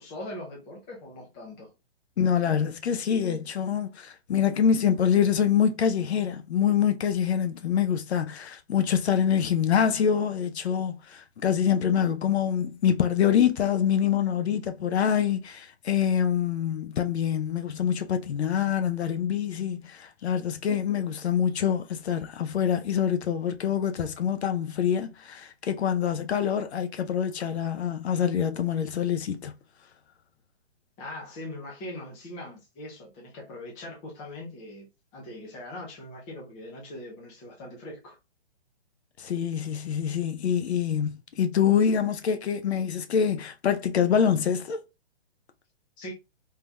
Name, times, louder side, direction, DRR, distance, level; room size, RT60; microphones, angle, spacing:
voice 1, 0.0-1.7 31.0-38.2 46.0-46.1, left 1 dB, 10° left, 0.6 m, -41 dB
voice 2, 2.2-29.5 39.2-44.8, left 8 dB, 80° left, 0.6 m, -25 dB
3.6 x 2.8 x 2.2 m
hypercardioid pair, 155°, 32 cm